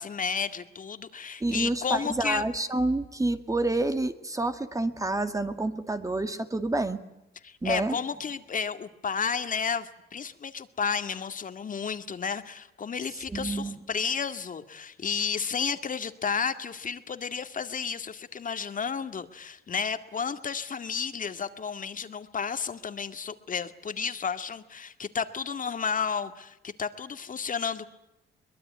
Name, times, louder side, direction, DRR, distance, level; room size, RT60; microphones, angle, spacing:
voice 1, 0.0-2.4 7.4-27.8, left 6 dB, 40° left, 9 dB, 2.1 m, -32 dB
voice 2, 1.4-7.0 7.6-8.0 13.3-13.8, right 2 dB, 15° right, 8 dB, 2.1 m, -28 dB
23.0 x 21.5 x 9.5 m, 0.91 s
cardioid pair, 90°, 20 cm